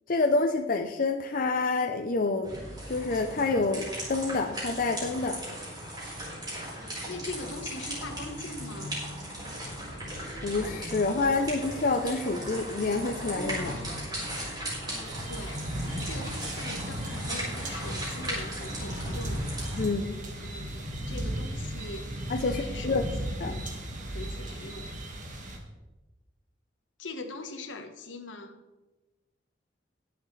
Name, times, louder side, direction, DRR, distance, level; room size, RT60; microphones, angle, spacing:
voice 1, 0.1-2.5 2.9-5.4 10.4-13.8 19.8-20.2 22.3-23.0 23.4-23.5, left 3 dB, 50° left, 5 dB, 0.6 m, -28 dB
sound 1, 2.4-19.8, right 1 dB, 25° right, 4.4 m, -37 dB
voice 2, 7.0-9.0 14.8-19.4 20.4-23.7 24.1-24.9 27.0-28.6, left 2 dB, 85° left, 6 dB, 1.3 m, -42 dB
sound 2, 15.1-25.6, right 1 dB, 45° right, 1.7 m, -36 dB
21.0 x 7.2 x 3.3 m, 1.1 s
head